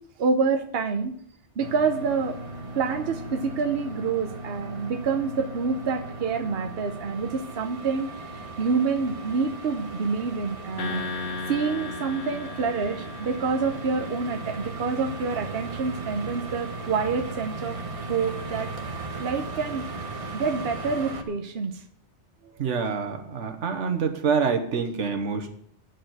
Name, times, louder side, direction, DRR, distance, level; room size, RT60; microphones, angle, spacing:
voice 1, 0.2-1.1 1.6-2.4 2.8-8.1 8.6-11.0 11.5-17.8 18.1-18.7 19.2-19.9 20.3-21.7 22.5-22.8, right 5 dB, 60° right, 6 dB, 1.1 m, -27 dB
sound 1, 1.6-21.2, right 2 dB, 30° right, 1.1 m, -37 dB
sound 2, 10.8-14.3, left 4 dB, 80° left, 1.6 m, -36 dB
voice 2, 22.6-25.5, right 5 dB, 85° right, 5 dB, 1.4 m, -26 dB
9.3 x 6.7 x 8.0 m, 0.63 s
omnidirectional pair, 1.2 m